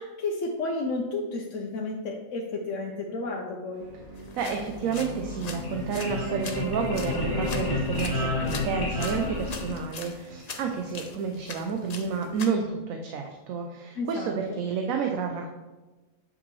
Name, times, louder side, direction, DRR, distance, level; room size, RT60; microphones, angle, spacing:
voice 1, 0.0-3.9 13.9-14.6, left 3 dB, 65° left, -1 dB, 1.0 m, -32 dB
sound 1, 3.7-9.5, left 1 dB, 45° right, 2.6 m, -43 dB
sound 2, 4.1-12.5, left 5 dB, 50° left, 0.5 m, -43 dB
voice 2, 4.4-15.5, right 5 dB, 75° right, 3 dB, 1.0 m, -30 dB
sound 3, 5.5-10.2, left 2 dB, 15° left, 1.8 m, -30 dB
8.0 x 5.4 x 3.1 m, 1.2 s
omnidirectional pair, 1.4 m